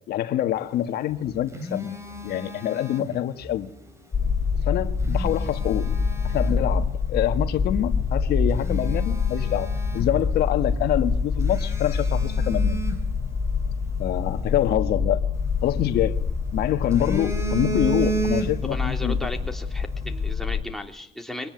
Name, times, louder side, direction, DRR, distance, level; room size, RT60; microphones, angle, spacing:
voice 1, 0.1-2.0 2.2-3.7 4.6-5.9 6.2-12.8 14.0-15.2 15.6-16.2 16.5-19.2, left 12 dB, 70° left, 8 dB, 1.5 m, -26 dB
Telephone, 1.0-3.6 4.8-6.7 7.3-7.5 8.0-8.1 8.5-10.5 10.8-10.9 11.4-13.8 15.4-16.3 16.7-18.9 19.2-19.4, right 3 dB, 15° right, 4.7 m, -33 dB
sound 1, 4.1-20.6, left 5 dB, 35° left, 2.6 m, -26 dB
voice 2, 18.6-21.5, left 1 dB, ahead, 2 dB, 3.4 m, -35 dB
24.0 x 18.5 x 9.5 m, 0.69 s
cardioid pair, 110°, 17 cm